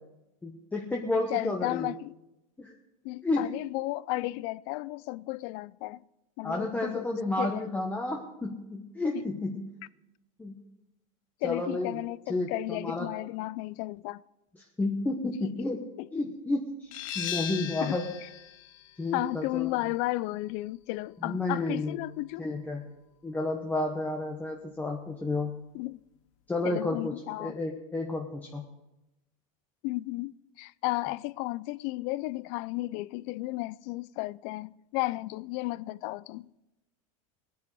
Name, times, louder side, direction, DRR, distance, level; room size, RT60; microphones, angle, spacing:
voice 1, 0.4-1.9 2.6-2.7 3.2-3.5 6.4-9.7 10.4-10.5 11.4-11.9 12.3-13.1 14.8-15.8 16.1-18.1 19.0-19.8 21.2-22.0 22.4-22.8 23.2-25.5 26.5-27.1 27.4-28.6, left 2 dB, 10° left, 1.0 m, -31 dB
voice 2, 1.3-2.1 3.0-6.0 6.4-7.1 7.4-7.7 9.1-9.3 11.4-14.2 15.4-15.5 16.0-16.3 17.8-18.0 19.1-22.5 25.7-26.0 26.6-27.6 29.8-36.5, left 19 dB, 50° left, 0.4 m, -34 dB
sound 1, 16.9-22.3, left 11 dB, 65° left, 0.9 m, -40 dB
19.0 x 9.4 x 4.8 m
supercardioid pair, 140°, 18 cm